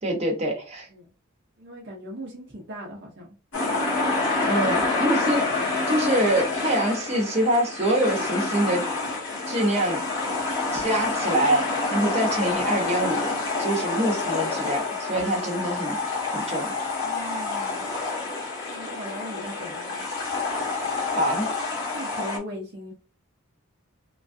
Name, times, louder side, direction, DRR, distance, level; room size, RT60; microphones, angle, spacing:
voice 1, 0.0-0.9 4.5-5.5 5.9-8.9 9.5-10.0 10.7-13.3 13.6-16.0 16.3-16.7 21.1-21.5, right 1 dB, 30° right, 0 dB, 1.0 m, -25 dB
voice 2, 1.6-3.4 4.4-4.8 17.0-17.8 18.7-20.1 21.9-22.9, equal, 50° right, -1 dB, 0.7 m, -39 dB
sound 1, 3.5-22.4, left 3 dB, 60° left, 1.3 m, -28 dB
3.1 x 2.4 x 2.6 m, 0.33 s
head